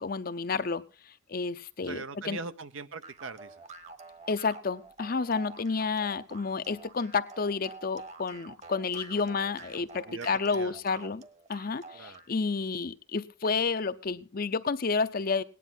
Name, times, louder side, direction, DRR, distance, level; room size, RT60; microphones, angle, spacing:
voice 1, 0.0-2.4 4.3-11.2 11.5-15.4, left 4 dB, 45° left, 13 dB, 0.6 m, -30 dB
voice 2, 1.8-3.6 9.1-9.3 10.1-10.8 11.9-12.2, right 4 dB, 80° right, 11 dB, 0.9 m, -41 dB
sound 1, 3.0-12.3, right 4 dB, 35° right, 1.2 m, -48 dB
18.0 x 10.0 x 4.0 m, 0.33 s
head